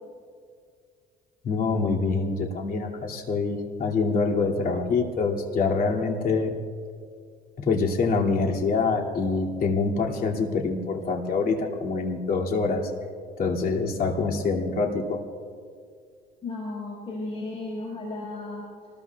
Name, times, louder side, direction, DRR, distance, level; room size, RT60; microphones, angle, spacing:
voice 1, 1.4-6.6 7.6-12.9 13.4-15.2, left 4 dB, 55° left, 0 dB, 2.5 m, -25 dB
voice 2, 16.4-18.6, left 2 dB, 35° left, -4 dB, 5.5 m, -34 dB
27.5 x 20.5 x 2.4 m, 2.2 s
cardioid pair, 110°, 17 cm